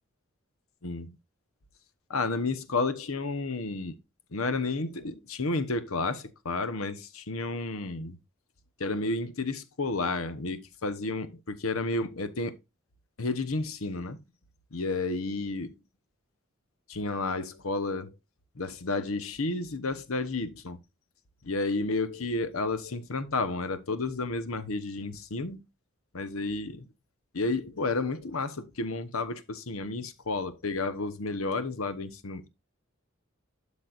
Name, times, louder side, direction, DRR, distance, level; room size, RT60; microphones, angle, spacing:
voice 1, 0.8-1.2 2.1-4.0 4.3-8.2 8.8-12.6 13.2-14.2 14.7-15.7 16.9-18.1 18.5-20.8 21.4-25.6 26.1-26.9 27.3-32.5, left 3 dB, 80° left, 1.0 m, -31 dB
12.0 x 5.4 x 2.5 m
head